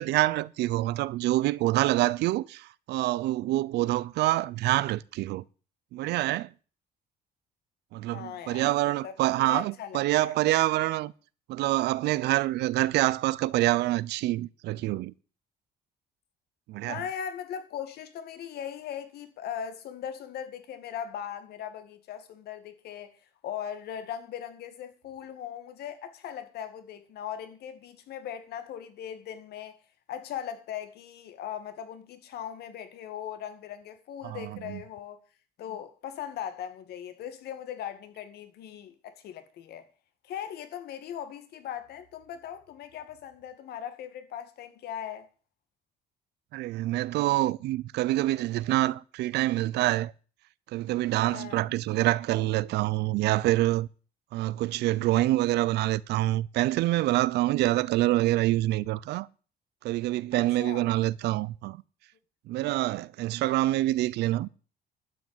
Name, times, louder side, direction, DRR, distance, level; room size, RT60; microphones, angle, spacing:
voice 1, 0.0-5.4 5.9-6.5 7.9-11.1 11.5-15.1 16.7-17.0 34.2-34.8 46.5-50.1 50.7-53.9 54.3-59.3 59.8-61.8 62.5-64.5, right 16 dB, 80° right, 0.7 m, -26 dB
voice 2, 8.1-8.7 9.0-10.3 16.8-23.1 23.4-29.8 30.1-35.2 35.6-39.9 40.2-45.3 51.3-51.6 60.3-60.8, left 9 dB, 70° left, 2.2 m, -39 dB
12.5 x 6.1 x 9.2 m
cardioid pair, 110°, 17 cm